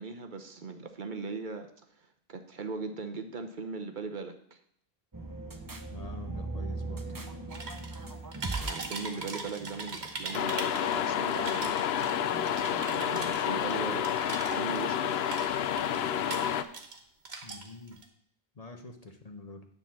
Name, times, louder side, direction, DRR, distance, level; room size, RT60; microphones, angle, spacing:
voice 1, 0.0-4.6 8.6-11.8 12.9-15.4, right 4 dB, 55° right, 6 dB, 0.8 m, -39 dB
sound 1, 5.1-13.6, right 2 dB, 20° right, 0.7 m, -41 dB
voice 2, 5.9-7.0 17.4-18.0 18.5-19.7, left 2 dB, 40° left, 5 dB, 0.9 m, -46 dB
sound 2, 7.5-8.0 8.3-11.0 11.3-15.0 15.2-17.0 17.3-18.0, right 4 dB, 80° right, 1.5 m, -40 dB
sound 3, 10.3-16.6, left 9 dB, 75° left, 0.8 m, -29 dB
9.8 x 4.0 x 7.2 m, 0.70 s
omnidirectional pair, 1.1 m